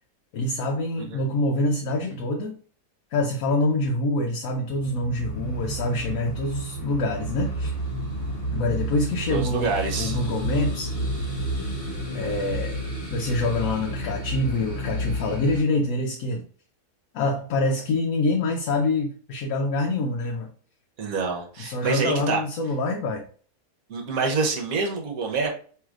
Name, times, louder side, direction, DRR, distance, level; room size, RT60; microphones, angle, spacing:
voice 1, 0.3-2.5 3.1-7.7 8.5-9.7 10.0-10.9 12.1-12.8 13.1-16.4 17.1-20.5 21.6-23.2, left 2 dB, 70° left, 2 dB, 1.0 m, -26 dB
sound 1, 4.7-15.6, right 1 dB, 40° left, 1.4 m, -30 dB
voice 2, 9.3-10.2 21.0-22.4 23.9-25.5, right 4 dB, 65° right, 1 dB, 1.3 m, -26 dB
4.7 x 3.1 x 2.4 m, 0.44 s
omnidirectional pair, 1.7 m